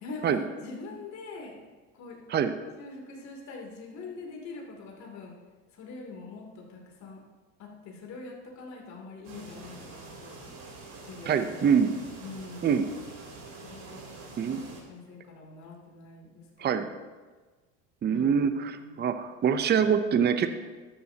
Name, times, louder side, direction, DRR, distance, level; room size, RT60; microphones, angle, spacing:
voice 1, 0.0-1.6 2.0-2.2 2.8-5.3 5.7-7.2 7.6-10.4 11.0-11.8 12.2-12.8 13.6-14.1 14.9-16.8 18.1-19.0, left 3 dB, 50° left, -1 dB, 3.0 m, -43 dB
sound 1, 9.2-14.8, right 3 dB, 45° right, 3.6 m, -46 dB
voice 2, 11.3-11.9 12.6-12.8 14.4-14.6 16.6-16.9 18.0-20.5, right 7 dB, 25° right, 9 dB, 0.7 m, -24 dB
13.0 x 10.5 x 2.9 m, 1.3 s
supercardioid pair, 100°, 37 cm